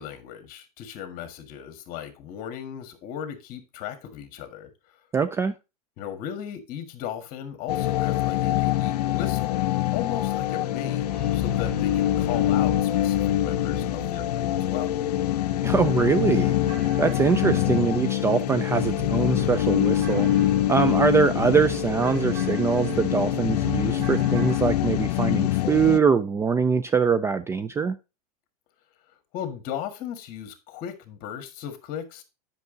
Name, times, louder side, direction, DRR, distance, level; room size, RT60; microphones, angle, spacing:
voice 1, 0.0-4.7 6.0-9.6 9.9-14.9 17.4-17.6 29.3-32.2, left 9 dB, 45° left, 1.7 m, -36 dB
voice 2, 5.1-5.6 15.6-16.5 17.0-20.3 20.7-28.0, right 5 dB, 15° right, 0.3 m, -23 dB
sound 1, 7.7-26.0, left 14 dB, 85° left, 0.6 m, -24 dB
sound 2, 10.5-18.2, right 7 dB, 5° left, 1.3 m, -41 dB
sound 3, 14.7-14.8 15.1-15.2 15.5-24.6, right 8 dB, 65° right, 1.3 m, -37 dB
8.2 x 5.9 x 3.9 m
supercardioid pair, 125°, 20 cm